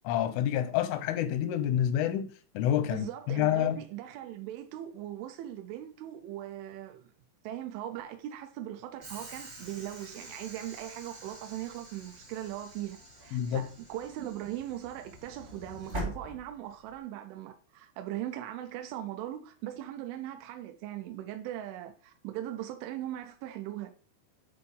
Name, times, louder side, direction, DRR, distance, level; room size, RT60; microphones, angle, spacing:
voice 1, 0.1-2.3 2.5-3.8 13.3-13.7, left 11 dB, 90° left, 3.4 m, -28 dB
voice 2, 2.9-7.1 7.4-23.9, right 12 dB, 85° right, 3.2 m, -39 dB
Train / Sliding door, 9.0-17.0, right 1 dB, 55° right, 0.7 m, -44 dB
9.7 x 3.8 x 5.3 m
omnidirectional pair, 5.4 m